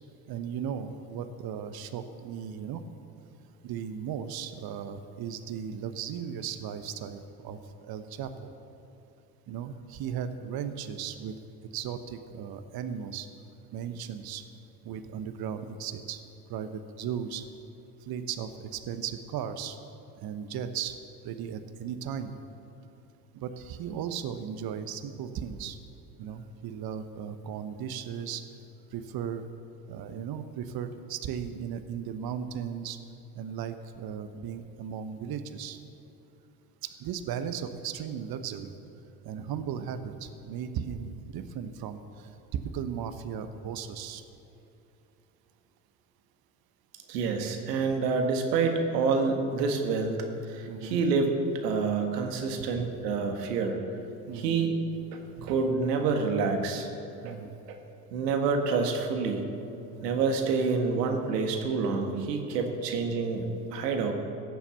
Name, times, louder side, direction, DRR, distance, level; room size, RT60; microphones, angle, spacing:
voice 1, 0.3-2.8 3.6-8.5 9.5-11.3 11.7-13.3 13.7-14.4 14.8-16.2 16.5-17.5 18.0-19.8 20.2-21.0 21.2-22.4 23.3-25.8 26.2-28.4 28.9-29.4 29.9-33.0 33.3-35.8 36.8-38.7 39.2-44.2 50.7-51.0 54.3-54.6 55.4-55.5 57.2-57.6 59.9-60.2 62.6-62.8, right 8 dB, 50° right, 10 dB, 1.1 m, -36 dB
voice 2, 47.1-50.2 50.5-51.3 51.6-53.8 54.3-54.7 55.1-56.9 57.2-57.3 58.1-59.5 60.0-64.1, right 4 dB, 80° right, 4 dB, 1.6 m, -27 dB
17.0 x 7.1 x 7.0 m, 2.8 s
hypercardioid pair, 60°, 48 cm